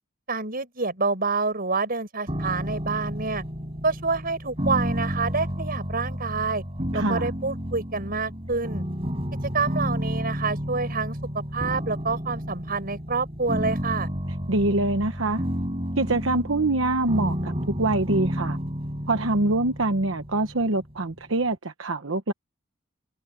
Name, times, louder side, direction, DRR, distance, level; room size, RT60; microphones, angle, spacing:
voice 1, 0.3-3.4 3.8-6.6 6.9-8.8 9.5-11.2 11.5-14.1, right 4 dB, 50° right, 6.1 m, -27 dB
sound 1, 2.3-21.2, equal, 30° right, 7.4 m, -31 dB
voice 2, 6.9-7.3 14.5-15.4 16.0-17.5 17.8-18.6 19.1-22.3, right 2 dB, 75° right, 1.1 m, -24 dB
head